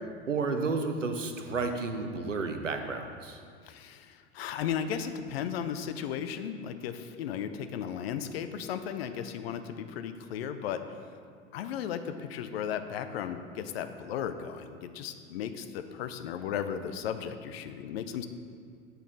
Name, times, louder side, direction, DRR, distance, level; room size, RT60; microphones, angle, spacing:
voice 1, 0.3-3.4, right 4 dB, 85° right, 6 dB, 0.6 m, -31 dB
voice 2, 3.6-10.8 11.5-18.3, left 8 dB, 55° left, 9 dB, 0.5 m, -35 dB
8.1 x 5.9 x 3.8 m, 2.2 s
figure-of-eight pair, 80°, 37 cm